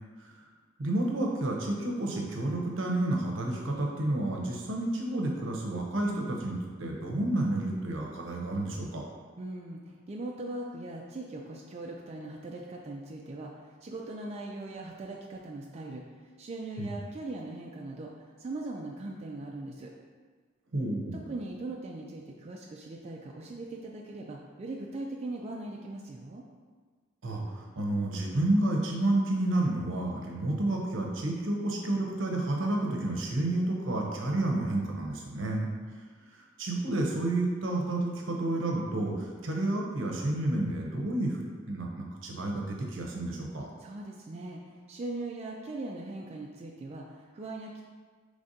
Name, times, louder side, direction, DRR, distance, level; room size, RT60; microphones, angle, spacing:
voice 1, 0.8-9.0 16.8-16.9 20.7-21.3 27.2-35.7 36.3-43.7, right 1 dB, 70° right, 0 dB, 0.7 m, -30 dB
voice 2, 9.4-16.0 16.4-19.9 21.1-26.4 43.8-47.8, right 2 dB, 35° right, -1 dB, 0.3 m, -40 dB
5.0 x 3.3 x 2.7 m, 1.5 s
head